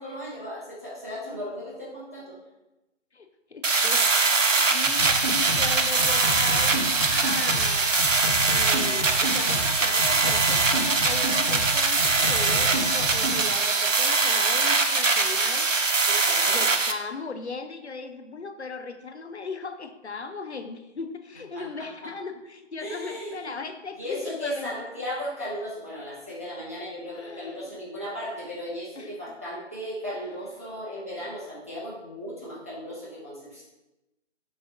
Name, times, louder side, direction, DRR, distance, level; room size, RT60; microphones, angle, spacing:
voice 1, 0.0-2.4 16.1-16.6 21.5-22.1 22.8-23.5 24.0-33.6, equal, 10° right, -9 dB, 0.7 m, -36 dB
voice 2, 3.1-4.0 4.4-7.9 8.4-15.9 16.5-24.8 27.1-27.7 29.0-29.1 30.1-30.3, left 4 dB, 60° left, 7 dB, 0.8 m, -38 dB
sound 1, 3.6-16.9, right 4 dB, 80° right, 0.8 m, -22 dB
sound 2, 4.8-5.7 6.0-7.7 8.0-9.7 10.0-11.7 12.0-13.5, right 1 dB, 45° right, 1.2 m, -31 dB
Alarm, 7.8-14.9, right 3 dB, 30° left, 0.5 m, -42 dB
6.4 x 4.2 x 3.6 m, 0.99 s
figure-of-eight pair, 160°, 37 cm